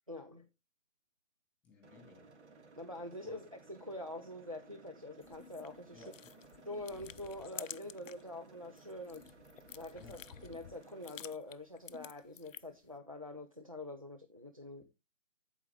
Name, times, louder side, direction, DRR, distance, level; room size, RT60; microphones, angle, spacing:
voice 1, 0.1-0.5 2.8-6.0 6.7-9.2 9.7-14.8, left 1 dB, 30° right, 0.4 m, -45 dB
voice 2, 1.6-2.3 3.2-3.4 5.9-6.3 10.0-10.2, left 2 dB, 5° left, 2.2 m, -57 dB
sound 1, 1.8-11.3, right 4 dB, 60° right, 1.7 m, -59 dB
sound 2, 5.2-8.3 8.6-12.9, left 8 dB, 80° left, 0.6 m, -51 dB
14.0 x 4.7 x 3.5 m
hypercardioid pair, 165°, 38 cm